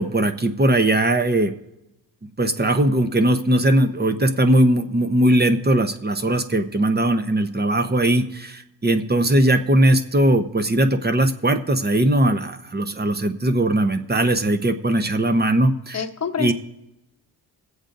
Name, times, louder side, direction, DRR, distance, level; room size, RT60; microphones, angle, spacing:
voice 1, 0.0-1.5 2.4-16.0 16.4-16.5, right 1 dB, 25° right, 7 dB, 0.7 m, -19 dB
voice 2, 15.9-16.5, left 6 dB, 40° left, 5 dB, 1.0 m, -26 dB
21.0 x 8.0 x 2.6 m, 0.91 s
cardioid pair, 65°, 42 cm